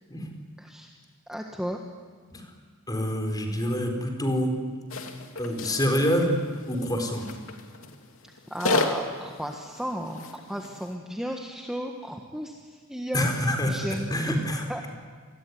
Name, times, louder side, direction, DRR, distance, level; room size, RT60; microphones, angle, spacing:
voice 1, 0.6-0.9 1.3-1.8 8.5-13.3 13.7-14.9, equal, 5° right, 1 dB, 1.5 m, -34 dB
voice 2, 2.9-4.5 5.4-6.3 6.7-7.2 13.1-13.8 14.1-14.9, equal, 20° left, 4 dB, 4.4 m, -26 dB
sound 1, 4.9-11.0, left 2 dB, 85° left, 2.8 m, -33 dB
27.5 x 21.0 x 9.6 m, 1.5 s
head